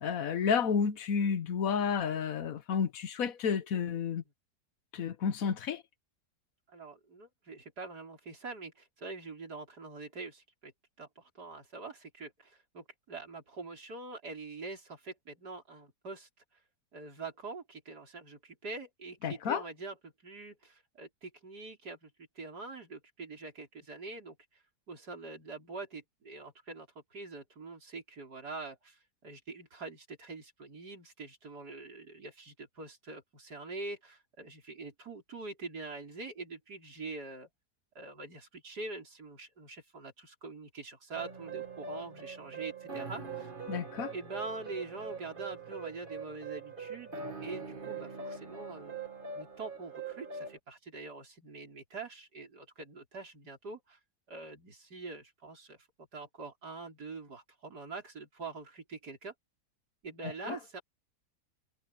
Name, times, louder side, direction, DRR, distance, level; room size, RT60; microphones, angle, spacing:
voice 1, 0.0-4.2 4.9-5.8 19.2-19.6 43.7-44.1 60.5-60.6, left 6 dB, 60° left, 1.3 m, -31 dB
voice 2, 6.7-10.7 11.0-16.3 16.9-24.4 24.9-37.5 38.0-43.5 44.1-49.0 49.3-54.0 54.3-59.3 60.0-60.8, right 3 dB, 70° right, 5.3 m, -44 dB
sound 1, 41.1-50.6, right 5 dB, 30° right, 2.4 m, -42 dB
omnidirectional pair, 1.8 m